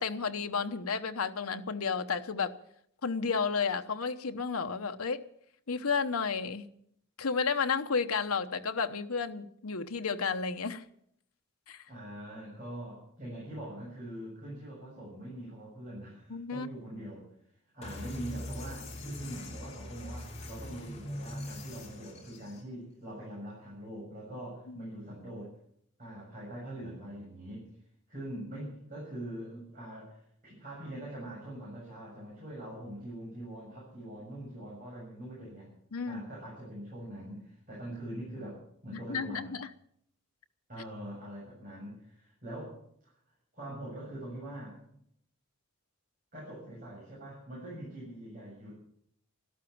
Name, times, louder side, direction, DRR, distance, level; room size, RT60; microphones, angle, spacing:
voice 1, 0.0-2.5 3.0-5.2 5.7-6.7 7.2-10.8 11.7-11.8 16.3-16.7 24.7-24.8 35.9-36.2 38.9-39.7, left 5 dB, 90° left, 0.9 m, -32 dB
voice 2, 11.9-17.3 17.7-25.5 26.0-27.7 28.1-30.2 30.4-35.7 36.1-39.5 40.7-42.8 43.5-45.0 46.3-48.7, right 1 dB, 40° right, 7.5 m, -43 dB
sound 1, 17.8-22.6, left 1 dB, 30° left, 3.1 m, -41 dB
13.0 x 12.0 x 8.6 m
head